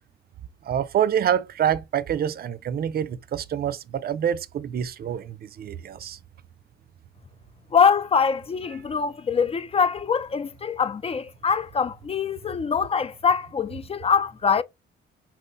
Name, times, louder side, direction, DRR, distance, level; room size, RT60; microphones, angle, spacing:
voice 1, 0.6-6.2, right 9 dB, 50° right, 0.5 m, -26 dB
voice 2, 7.7-14.6, left 6 dB, 30° left, 0.3 m, -23 dB
5.9 x 2.1 x 3.9 m
cardioid pair, 90°, 20 cm